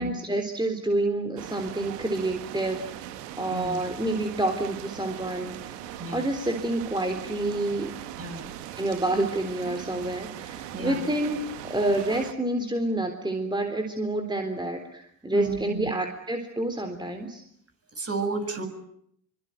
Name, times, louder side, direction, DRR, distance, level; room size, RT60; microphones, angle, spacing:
voice 1, 0.0-3.0 3.4-5.8 6.1-7.9 8.8-11.4 11.6-17.4, right 1 dB, 10° right, 5 dB, 3.8 m, -28 dB
sound 1, 1.4-12.3, right 11 dB, 80° right, 1.8 m, -40 dB
voice 2, 3.5-3.9 6.0-6.3 8.2-8.5 10.7-11.1 15.3-15.9 17.9-18.7, right 3 dB, 30° right, 6 dB, 7.7 m, -33 dB
24.5 x 24.0 x 9.4 m, 0.70 s
hypercardioid pair, 55°, 47 cm